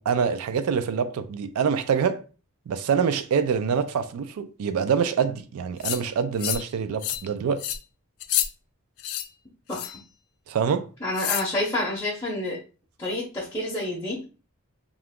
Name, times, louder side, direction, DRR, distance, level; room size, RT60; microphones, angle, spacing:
voice 1, 0.0-2.2 2.7-7.7 10.5-10.9, right 6 dB, 75° right, 0.3 m, -25 dB
sound 1, 5.8-6.0 6.4-6.7 7.0-7.3 7.6-7.8 8.2-8.5 9.0-9.3 9.7-10.0 11.2-11.5, left 12 dB, 75° left, 0.4 m, -28 dB
voice 2, 11.0-12.6 13.0-14.2, left 1 dB, 15° left, 0.6 m, -28 dB
2.9 x 2.4 x 3.5 m
head